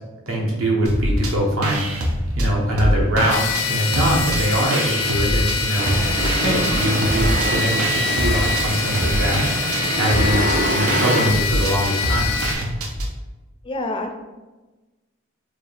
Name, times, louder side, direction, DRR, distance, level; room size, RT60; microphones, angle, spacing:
voice 1, 0.3-1.8 2.4-5.9 6.4-9.4 9.9-12.3, right 1 dB, 70° right, -2 dB, 1.0 m, -22 dB
sound 1, 0.9-1.3 1.6-3.7 3.9-5.6 5.9-13.1, equal, 85° right, 0.6 m, -24 dB
sound 2, 3.3-12.5, left 4 dB, 75° left, 0.6 m, -25 dB
sound 3, 5.8-11.3, right 1 dB, 40° right, 0.4 m, -25 dB
voice 2, 5.9-6.2 13.6-14.2, left 2 dB, 25° left, 4 dB, 0.3 m, -28 dB
4.6 x 2.4 x 3.4 m, 1.1 s
head